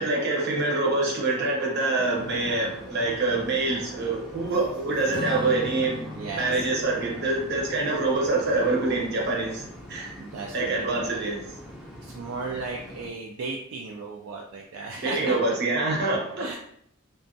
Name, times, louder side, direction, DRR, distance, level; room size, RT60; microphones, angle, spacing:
voice 1, 0.0-6.0 6.4-10.2 10.5-11.4 15.0-16.6, right 2 dB, 55° right, -3 dB, 0.7 m, -25 dB
sound 1, 2.2-13.1, left 1 dB, ahead, 0.4 m, -44 dB
Strum, 5.1-9.8, left 2 dB, 40° left, 0.7 m, -40 dB
voice 2, 6.1-6.6 10.2-10.8 12.0-15.5 16.4-16.6, right 3 dB, 75° right, -1 dB, 0.3 m, -35 dB
2.4 x 2.2 x 2.5 m, 0.70 s
head